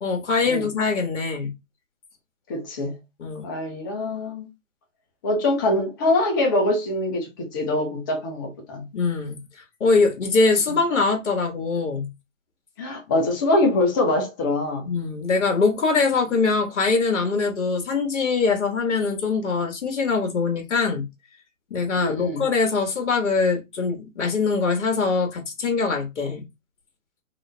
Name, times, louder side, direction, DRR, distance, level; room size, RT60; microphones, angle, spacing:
voice 1, 0.0-1.5 3.2-3.4 8.9-9.4 9.8-12.1 14.9-21.0 21.7-26.4, left 4 dB, 60° left, 1.4 m, -23 dB
voice 2, 2.5-3.0 3.4-4.5 5.2-8.9 12.8-14.9 22.0-22.5, left 2 dB, 15° left, 0.6 m, -24 dB
3.7 x 2.6 x 3.2 m
figure-of-eight pair, 140°, 40 cm